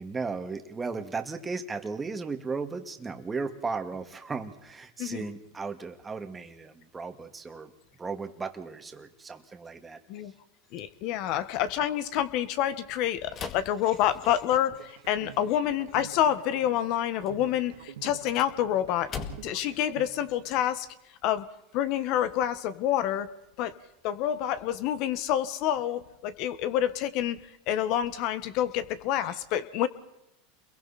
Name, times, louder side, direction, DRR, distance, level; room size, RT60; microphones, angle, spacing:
voice 1, 0.0-7.7 8.0-10.0 11.3-11.4 13.4-13.5, right 4 dB, 15° right, 7 dB, 2.1 m, -36 dB
voice 2, 10.7-19.1 19.4-20.9 21.2-21.5 21.7-23.3 23.6-23.7 24.0-27.4 27.7-29.9, left 11 dB, 55° left, 13 dB, 1.5 m, -28 dB
sound 1, 13.3-14.7 18.0-19.7, left 6 dB, 35° left, 2.2 m, -40 dB
sound 2, 14.7-20.7, right 11 dB, 90° right, 2.9 m, -47 dB
29.0 x 22.5 x 4.3 m, 0.88 s
supercardioid pair, 115°, 0 cm